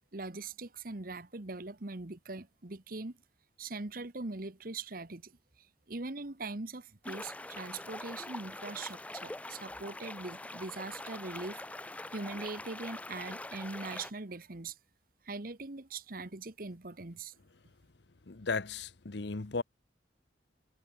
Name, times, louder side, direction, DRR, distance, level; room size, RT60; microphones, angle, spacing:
voice 1, 0.1-3.2 3.6-5.3 5.9-11.6 12.1-14.8 15.2-17.3, right 3 dB, 50° right, 1.3 m, -41 dB
sound 1, 7.0-14.1, left 2 dB, 10° left, 0.4 m, -44 dB
voice 2, 18.3-19.6, left 4 dB, 65° left, 0.9 m, -35 dB
head